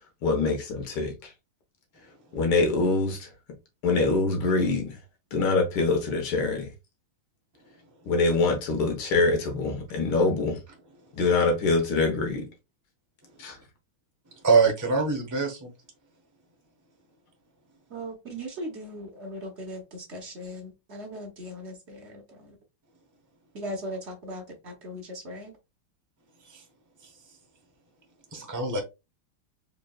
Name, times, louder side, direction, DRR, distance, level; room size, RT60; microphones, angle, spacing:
voice 1, 0.2-1.3 2.3-3.3 3.8-5.0 5.3-6.7 8.1-10.6 11.1-12.5 13.4-13.6, left 3 dB, 80° left, 2.0 m, -24 dB
voice 2, 14.4-15.7 28.3-28.8, right 4 dB, 20° right, 0.5 m, -23 dB
voice 3, 17.9-22.6 23.5-25.5, equal, 45° right, 0.9 m, -38 dB
4.2 x 3.6 x 2.3 m
omnidirectional pair, 2.3 m